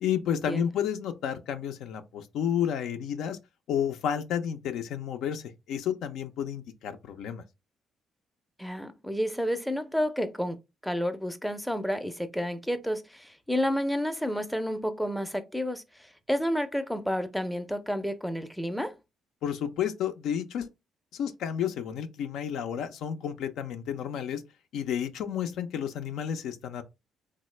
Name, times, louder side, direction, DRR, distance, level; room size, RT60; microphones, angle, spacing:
voice 1, 0.0-3.4 3.7-7.4 19.4-20.7 21.1-24.4 24.7-26.8, left 9 dB, 75° left, 0.4 m, -31 dB
voice 2, 8.6-19.0, equal, ahead, 0.5 m, -30 dB
3.0 x 2.0 x 3.1 m
supercardioid pair, 60°, 0 cm